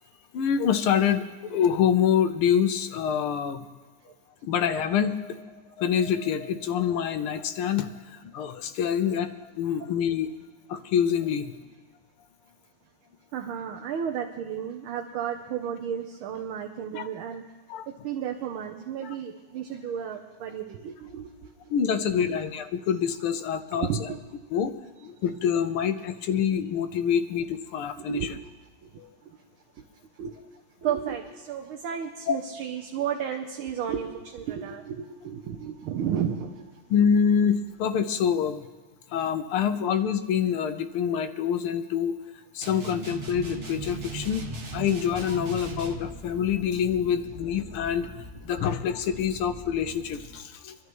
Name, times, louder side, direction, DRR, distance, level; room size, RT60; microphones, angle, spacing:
voice 1, 0.3-3.6 4.4-10.3 10.7-11.5 16.9-17.1 17.7-17.9 21.7-23.9 24.5-24.7 25.0-28.2 29.0-29.1 32.3-32.4 36.9-38.7 39.1-42.2 42.5-44.4 44.7-48.1 48.4-50.8, left 8 dB, 90° left, 9 dB, 1.7 m, -26 dB
voice 2, 13.3-17.4 17.9-21.3 22.3-22.4 23.7-24.2 28.0-28.4 30.2-30.3 30.8-36.6, right 8 dB, 80° right, 3 dB, 1.6 m, -32 dB
sound 1, 42.6-46.1, right 4 dB, 40° right, 1.3 m, -38 dB
sound 2, 43.3-50.3, left 1 dB, 20° right, 2.0 m, -44 dB
25.0 x 12.0 x 3.1 m, 1.3 s
omnidirectional pair, 2.3 m